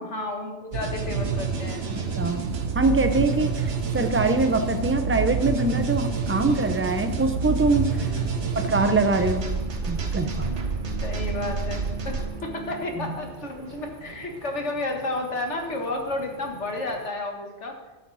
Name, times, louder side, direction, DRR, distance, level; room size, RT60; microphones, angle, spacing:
voice 1, 0.0-1.9 8.1-8.4 11.0-17.8, left 2 dB, 70° left, 2 dB, 2.1 m, -32 dB
sound 1, 0.7-12.3, right 5 dB, 70° right, 1.4 m, -28 dB
sound 2, 0.9-17.1, right 5 dB, 45° right, 1.1 m, -39 dB
voice 2, 2.7-8.1 8.6-9.5 9.9-10.6, right 3 dB, 15° right, 7 dB, 0.7 m, -23 dB
14.0 x 8.4 x 4.2 m, 1.1 s
omnidirectional pair, 1.2 m